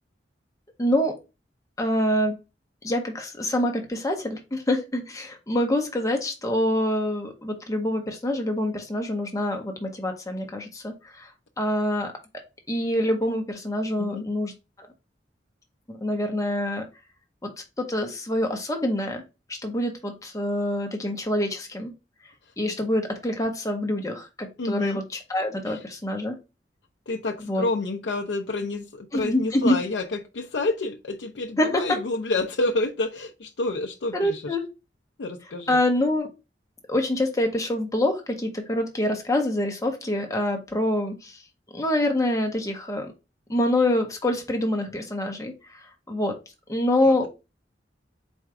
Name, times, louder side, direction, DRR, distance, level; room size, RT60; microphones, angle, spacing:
voice 1, 0.8-1.1 1.8-2.4 2.8-11.3 11.6-12.1 12.7-14.5 15.9-16.9 17.4-17.5 17.8-19.2 19.6-21.9 22.6-26.4 27.5-27.6 29.1-29.8 31.6-32.0 34.1-34.6 35.7-36.3 36.9-41.3 41.7-43.1 43.5-45.5 46.1-46.3 46.7-47.3, left 1 dB, 20° left, 3 dB, 0.8 m, -25 dB
voice 2, 24.6-25.0 25.7-25.8 27.1-34.6 35.2-35.8 47.0-47.3, left 2 dB, 75° left, 3 dB, 0.5 m, -29 dB
4.3 x 2.4 x 4.7 m, 0.27 s
head